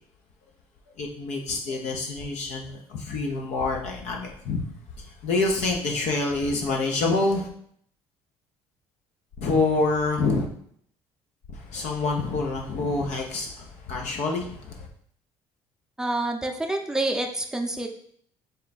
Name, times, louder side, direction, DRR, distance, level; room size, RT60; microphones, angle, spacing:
voice 1, 1.0-4.7 5.0-7.5 9.4-10.5 11.5-14.9, left 3 dB, 65° left, 0 dB, 0.7 m, -27 dB
voice 2, 16.0-17.9, right 2 dB, 5° right, 2 dB, 0.6 m, -27 dB
3.8 x 2.2 x 4.1 m, 0.64 s
supercardioid pair, 75°, 12 cm